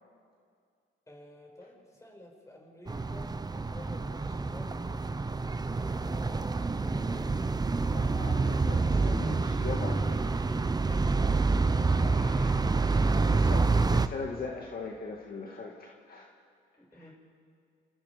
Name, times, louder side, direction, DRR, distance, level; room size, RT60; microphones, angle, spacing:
voice 1, 1.1-5.2 6.0-7.3 10.8-12.0 13.2-13.5 16.8-17.1, left 1 dB, 15° left, 0 dB, 6.7 m, -51 dB
sound 1, 2.9-14.1, right 3 dB, 20° right, 0.9 m, -27 dB
voice 2, 7.9-10.4 12.0-16.3 16.9-17.1, left 4 dB, 50° left, -1 dB, 2.3 m, -41 dB
28.5 x 27.5 x 5.3 m, 2.2 s
cardioid pair, 90°, 20 cm